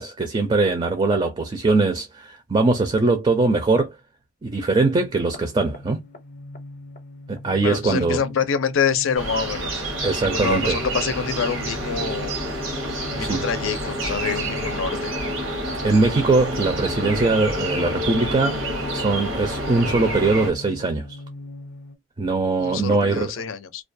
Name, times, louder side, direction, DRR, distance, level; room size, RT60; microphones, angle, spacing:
voice 1, 0.0-4.0 4.4-6.0 7.3-8.2 10.0-10.8 13.2-13.5 15.8-21.1 22.2-23.3, right 3 dB, 25° right, 0.4 m, -21 dB
sound 1, 5.2-22.0, left 2 dB, 40° left, 0.5 m, -40 dB
voice 2, 7.6-9.9 10.2-12.4 13.1-15.1 22.6-23.8, left 6 dB, 85° left, 0.5 m, -26 dB
sound 2, 9.2-20.5, right 1 dB, 85° right, 0.9 m, -28 dB
2.2 x 2.2 x 2.5 m
head